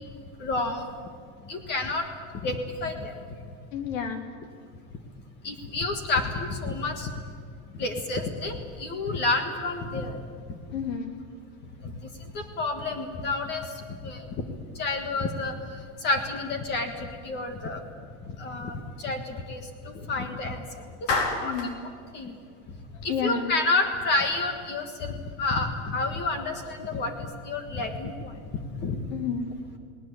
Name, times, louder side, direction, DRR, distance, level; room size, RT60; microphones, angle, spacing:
voice 1, 0.4-0.9 1.5-2.1 2.4-3.1 5.4-7.1 7.8-10.2 11.8-11.9 12.3-14.3 14.7-15.5 16.0-17.8 18.4-20.8 21.3-21.6 22.1-22.3 23.0-28.3 28.8-29.0, left 3 dB, 25° left, 6 dB, 1.6 m, -29 dB
voice 2, 3.7-4.2 10.7-11.1 21.4-21.7 23.1-23.5 29.1-29.5, left 7 dB, 85° left, 5 dB, 3.4 m, -30 dB
Clapping, 21.1-21.8, left 3 dB, 70° left, 4.5 m, -27 dB
19.5 x 19.0 x 9.9 m, 2.1 s
supercardioid pair, 180°, 38 cm